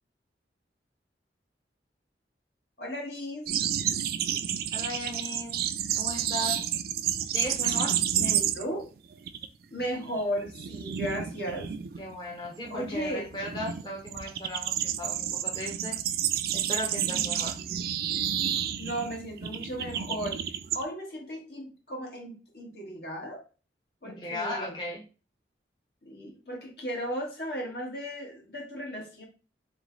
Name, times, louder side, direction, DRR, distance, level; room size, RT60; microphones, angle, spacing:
voice 1, 2.8-3.5 8.1-8.9 9.7-11.7 12.7-13.3 17.0-17.4 18.8-20.4 20.7-23.4 24.0-24.8 26.0-29.2, equal, 65° left, 0 dB, 1.5 m, -35 dB
sound 1, 3.5-8.9 9.1-9.5 9.8-20.8, right 10 dB, 55° right, 0.3 m, -30 dB
voice 2, 4.7-5.7 5.9-6.7 7.3-8.0 12.0-16.2 16.5-17.6 24.0-25.0, left 1 dB, 25° left, -3 dB, 0.8 m, -37 dB
3.4 x 3.1 x 3.7 m, 0.35 s
head